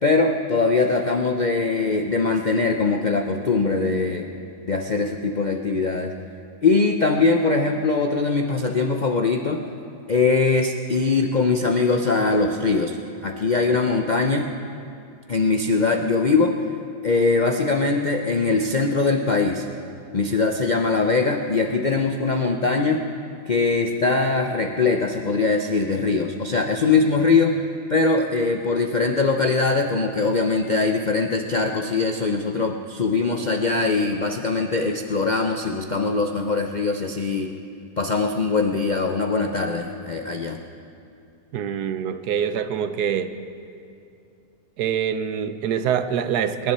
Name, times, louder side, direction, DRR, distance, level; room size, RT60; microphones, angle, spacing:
voice 1, 0.0-4.3 4.7-6.1 6.6-9.6 10.1-13.0 13.2-14.5 15.3-16.6 17.0-19.7 20.1-23.0 23.5-27.6 27.9-37.5 38.0-40.6, left 4 dB, 55° left, 3 dB, 0.5 m, -21 dB
voice 2, 41.5-43.3 44.8-46.7, right 8 dB, 75° right, 10 dB, 1.2 m, -25 dB
25.5 x 11.5 x 4.2 m, 2.6 s
omnidirectional pair, 1.7 m